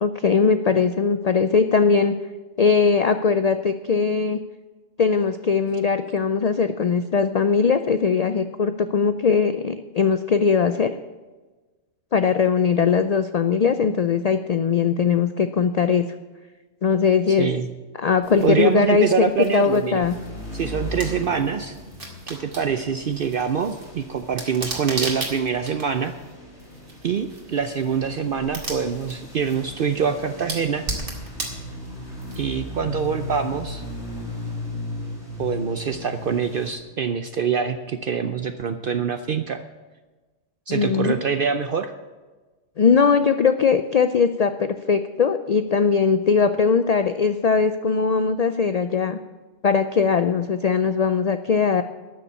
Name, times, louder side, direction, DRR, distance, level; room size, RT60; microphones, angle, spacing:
voice 1, 0.0-2.2 2.6-4.4 5.0-10.9 12.1-16.1 16.8-17.5 18.0-19.1 19.5-20.1 40.7-41.1 42.8-49.2 49.6-51.8, left 5 dB, 80° left, 10 dB, 0.3 m, -20 dB
voice 2, 17.3-17.7 18.4-20.1 20.5-21.8 22.3-26.1 27.0-30.9 32.3-33.8 35.4-39.6 40.7-41.9, right 6 dB, 55° right, 8 dB, 0.7 m, -25 dB
sound 1, 18.2-32.8, right 2 dB, 75° right, 2.5 m, -37 dB
sound 2, 20.0-36.7, left 1 dB, 45° left, 4.8 m, -37 dB
12.5 x 6.9 x 8.3 m, 1.3 s
omnidirectional pair, 1.3 m